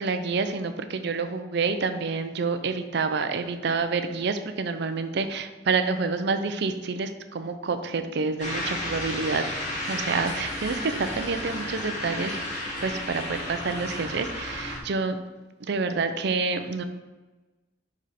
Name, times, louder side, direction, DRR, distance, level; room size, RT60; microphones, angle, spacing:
voice 1, 0.0-9.4 9.8-12.3 12.8-15.2 15.7-16.8, right 4 dB, 65° right, 9 dB, 0.5 m, -28 dB
sound 1, 8.4-14.8, left 1 dB, 40° left, 1.6 m, -33 dB
5.3 x 5.1 x 4.3 m, 1.2 s
head